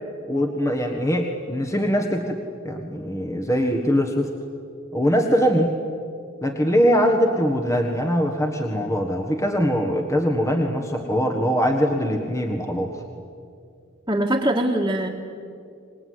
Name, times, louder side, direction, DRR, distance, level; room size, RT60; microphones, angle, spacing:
voice 1, 0.3-4.3 4.9-5.7 6.4-13.0, equal, 15° left, 3 dB, 1.5 m, -22 dB
voice 2, 14.1-15.1, right 1 dB, 15° right, -6 dB, 1.9 m, -22 dB
25.5 x 20.5 x 9.6 m, 2.4 s
head